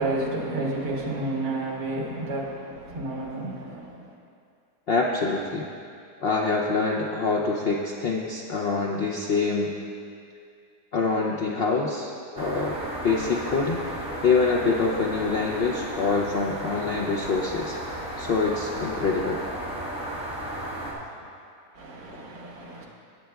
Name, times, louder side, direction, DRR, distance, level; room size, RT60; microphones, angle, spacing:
voice 1, 0.0-4.0 21.8-22.9, right 2 dB, 85° right, -2 dB, 2.0 m, -31 dB
voice 2, 4.9-5.7 6.2-9.7 10.9-12.8 13.0-13.8 14.2-17.8 18.2-19.4, left 4 dB, 65° left, -1 dB, 0.5 m, -25 dB
sound 1, 12.4-20.9, right 1 dB, 5° right, 1.1 m, -34 dB
18.0 x 7.6 x 2.3 m, 2.4 s
omnidirectional pair, 1.7 m